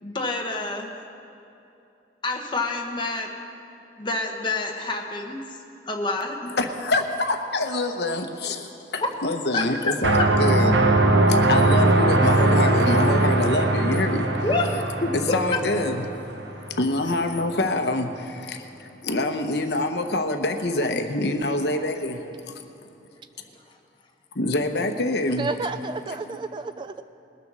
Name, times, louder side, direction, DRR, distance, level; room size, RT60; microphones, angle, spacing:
voice 1, 0.0-0.9 2.2-3.3 4.0-5.4 5.9-6.5 9.0-9.1 9.5-9.9 14.4-15.1 16.6-16.7, left 2 dB, 25° left, 1 dB, 1.2 m, -28 dB
voice 2, 6.5-10.8 11.3-14.3 14.7-14.8 15.1-16.0 16.8-22.2 24.3-25.5 26.1-26.2, left 2 dB, 65° left, 6 dB, 0.9 m, -26 dB
sound 1, 10.0-16.8, right 2 dB, 75° right, 1.0 m, -20 dB
voice 3, 25.4-27.0, right 3 dB, 25° right, 11 dB, 0.3 m, -31 dB
20.5 x 6.9 x 6.2 m, 2.8 s
head